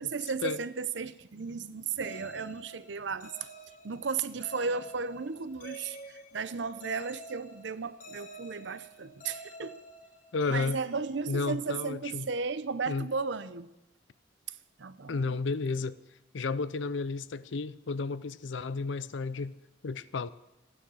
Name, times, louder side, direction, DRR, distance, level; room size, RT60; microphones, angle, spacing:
voice 1, 0.0-3.5 3.8-9.8 10.5-13.7 14.5-15.4, right 5 dB, 70° right, 0.7 m, -35 dB
sound 1, 2.0-11.8, equal, 45° left, 1.3 m, -49 dB
voice 2, 10.3-10.8 11.3-12.3 12.9-13.1 15.1-16.0 16.3-19.6 19.8-20.3, left 4 dB, 80° left, 0.6 m, -32 dB
15.0 x 9.7 x 6.3 m
head